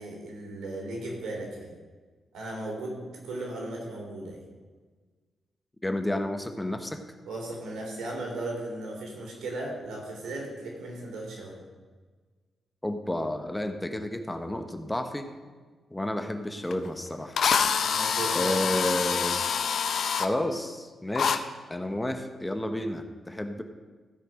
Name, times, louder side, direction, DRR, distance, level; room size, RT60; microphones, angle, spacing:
voice 1, 0.0-1.7 2.3-4.4 7.2-11.6 17.8-18.6, right 2 dB, 80° right, -1 dB, 3.4 m, -36 dB
voice 2, 5.8-7.0 12.8-15.3 15.9-17.4 18.3-19.3 20.2-23.6, left 1 dB, 15° left, 7 dB, 1.1 m, -31 dB
Drill, 16.7-16.8 17.4-20.3 21.2-21.4, left 6 dB, 70° left, 0.6 m, -26 dB
15.5 x 5.2 x 6.3 m, 1.4 s
cardioid pair, 60°, 0 cm